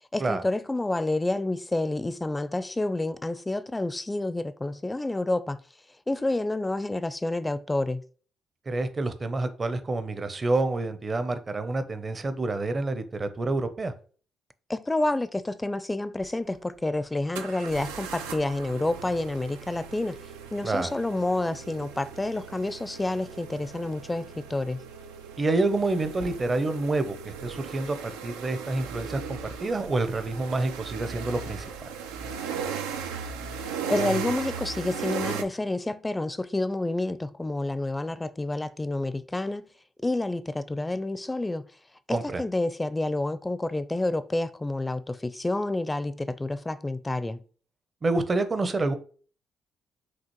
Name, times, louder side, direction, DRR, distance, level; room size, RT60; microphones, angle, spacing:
voice 1, 0.1-5.6 6.1-8.0 14.7-20.2 20.5-24.8 33.9-39.7 40.0-41.7 42.1-47.4, left 2 dB, 20° left, 0.5 m, -29 dB
voice 2, 8.7-13.9 20.6-20.9 25.4-31.7 42.1-42.4 48.0-48.9, right 2 dB, 40° right, 0.7 m, -28 dB
sound 1, 16.2-16.3 17.3-35.4, right 6 dB, 90° right, 0.4 m, -37 dB
6.1 x 2.5 x 3.1 m
hypercardioid pair, 50°, 0 cm